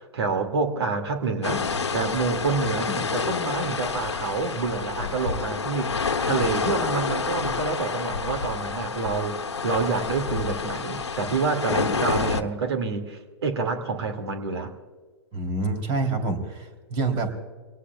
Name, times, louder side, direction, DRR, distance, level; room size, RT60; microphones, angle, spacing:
voice 1, 0.0-1.7 1.9-6.0 6.2-14.7, right 4 dB, 75° right, 7 dB, 2.3 m, -28 dB
sound 1, 1.4-12.4, left 5 dB, 90° left, 1.1 m, -28 dB
voice 2, 15.3-17.3, right 3 dB, 40° right, 6 dB, 3.3 m, -27 dB
25.0 x 18.5 x 2.4 m, 1.5 s
hypercardioid pair, 110°, 14 cm